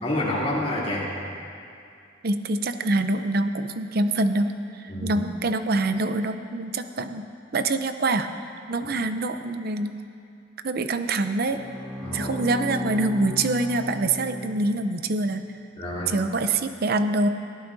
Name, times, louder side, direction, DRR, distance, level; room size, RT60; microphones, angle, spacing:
voice 1, 0.0-1.1 4.9-5.2 12.0-12.3 15.8-16.1, left 1 dB, 30° left, -7 dB, 3.1 m, -28 dB
voice 2, 2.2-4.5 4.8-7.2 7.5-8.3 8.7-10.0 10.6-11.6 12.1-15.5 16.1-17.3, right 2 dB, 50° right, 9 dB, 0.6 m, -25 dB
Bowed string instrument, 11.5-15.0, left 1 dB, 35° right, 2.2 m, -35 dB
20.5 x 15.0 x 2.7 m, 2.4 s
head